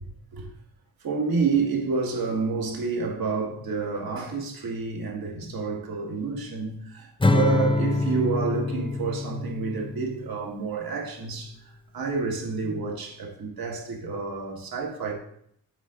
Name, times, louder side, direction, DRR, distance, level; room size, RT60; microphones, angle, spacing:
voice 1, 1.0-11.5 11.9-15.1, right 4 dB, 75° right, 2.0 m, -29 dB
Acoustic guitar / Strum, 7.2-10.5, left 3 dB, 15° left, 0.7 m, -25 dB
7.7 x 3.7 x 5.1 m
cardioid pair, 75°, 36 cm